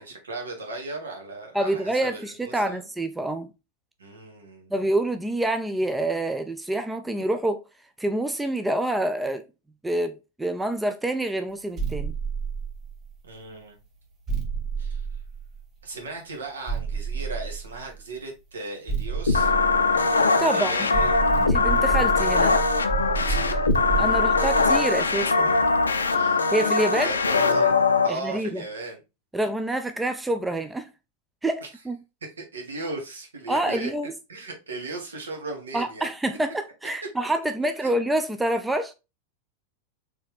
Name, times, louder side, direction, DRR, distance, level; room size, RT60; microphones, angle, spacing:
voice 1, 0.0-2.9 4.0-4.7 13.2-13.8 14.8-15.1 15.8-19.5 20.4-21.1 23.3-23.6 24.1-24.9 26.1-26.5 26.9-27.8 28.0-29.0 31.6-31.7 32.2-33.9 34.3-36.1 37.0-37.1 37.8-37.9, right 2 dB, 70° right, 1.4 m, -37 dB
voice 2, 1.5-3.5 4.7-7.6 8.0-9.4 9.8-10.1 10.4-12.1 20.4-20.9 21.5-22.6 24.0-25.6 26.5-27.2 28.1-28.6 29.3-30.9 31.4-32.0 33.5-34.1 35.7-38.9, right 1 dB, 5° right, 0.4 m, -27 dB
sound 1, 11.8-13.3 14.3-15.9 16.7-18.0 18.9-20.5 20.9-26.2, right 5 dB, 30° right, 1.2 m, -30 dB
sound 2, 19.3-28.1, left 4 dB, 75° left, 0.4 m, -21 dB
4.4 x 3.3 x 3.4 m
figure-of-eight pair, 90°, 0 cm